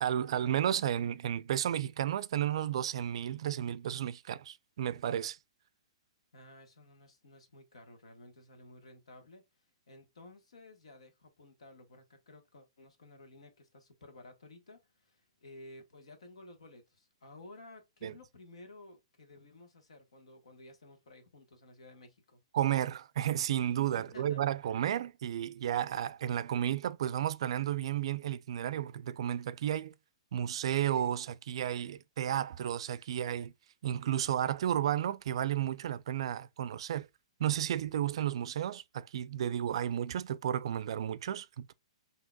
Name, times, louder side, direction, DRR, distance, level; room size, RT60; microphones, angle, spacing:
voice 1, 0.0-5.4 18.0-18.1 22.5-29.9 30.3-33.5 33.8-37.1 37.4-41.7, right 10 dB, 65° right, 0.4 m, -32 dB
voice 2, 6.3-9.4 9.9-22.4 23.9-24.5, left 2 dB, 85° left, 1.3 m, -54 dB
5.7 x 2.8 x 2.3 m
hypercardioid pair, 140°, 3 cm